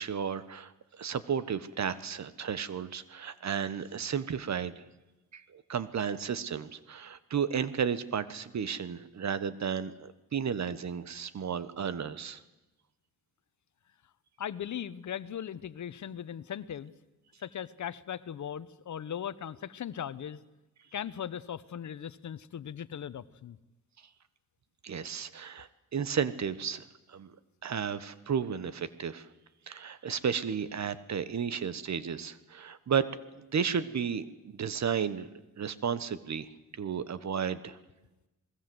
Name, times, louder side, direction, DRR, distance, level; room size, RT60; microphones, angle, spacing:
voice 1, 0.0-4.8 5.3-12.4 24.8-27.3 27.6-29.3 29.7-33.1 33.3-35.3 35.6-37.8, right 7 dB, 50° right, 15 dB, 1.4 m, -33 dB
voice 2, 14.4-16.9 17.4-20.4 20.9-23.6, left 9 dB, 55° left, 15 dB, 1.1 m, -38 dB
27.0 x 21.0 x 8.0 m, 1.0 s
cardioid pair, 85°, 35 cm